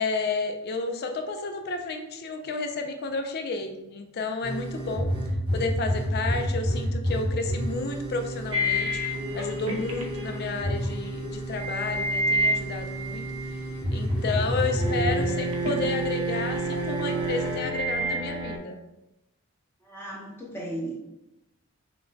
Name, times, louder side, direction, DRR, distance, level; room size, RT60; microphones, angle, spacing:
voice 1, 0.0-5.1 5.5-13.2 13.9-18.8, left 3 dB, 50° left, 6 dB, 0.4 m, -31 dB
sound 1, 4.4-17.6, equal, 20° right, 0.8 m, -31 dB
sound 2, 8.5-13.8 14.1-18.6, right 1 dB, 65° right, 0.6 m, -30 dB
voice 2, 19.8-21.0, right 1 dB, 10° left, -4 dB, 0.8 m, -35 dB
5.7 x 2.2 x 2.7 m, 0.93 s
head